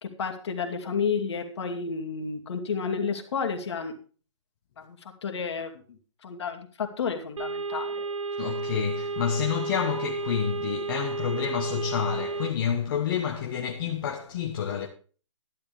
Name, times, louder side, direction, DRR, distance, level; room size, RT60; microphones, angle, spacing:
voice 1, 0.0-3.9 4.8-5.7 6.2-8.0, left 5 dB, 60° left, 2.6 m, -31 dB
sound 1, 7.4-12.5, right 4 dB, 85° right, 1.5 m, -32 dB
voice 2, 8.4-14.9, left 8 dB, 45° left, 1.3 m, -29 dB
12.5 x 11.5 x 3.5 m
hypercardioid pair, 145°, 16 cm